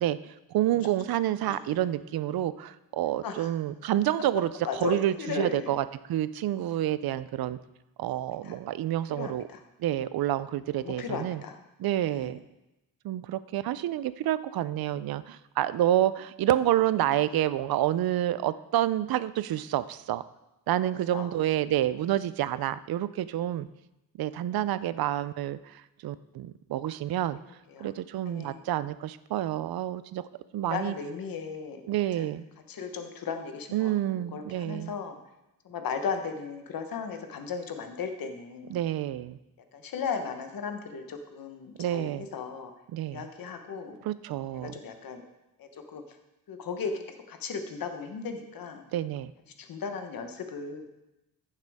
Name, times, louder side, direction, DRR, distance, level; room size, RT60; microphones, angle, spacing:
voice 1, 0.0-4.5 4.8-7.6 8.0-9.5 9.8-11.4 11.8-12.4 13.0-20.2 20.7-23.7 24.2-27.4 27.8-30.3 30.5-30.9 31.9-32.4 33.7-34.9 38.7-39.4 41.8-42.2 42.9-43.3 44.0-44.7 48.9-49.3, right 12 dB, 75° right, 15 dB, 0.5 m, -28 dB
voice 2, 1.4-1.8 3.2-3.5 4.6-5.7 8.3-8.6 9.1-9.6 10.7-11.6 12.1-12.4 21.1-21.3 27.7-27.9 28.3-28.6 30.7-31.8 32.2-32.3 32.7-35.2 35.6-38.8 39.7-42.7 43.1-44.0 44.6-45.3 45.6-46.0 46.5-46.9 47.3-48.8 49.6-50.9, left 5 dB, 65° left, 6 dB, 1.1 m, -36 dB
14.5 x 6.7 x 3.5 m, 0.95 s
wide cardioid pair, 145°, 37 cm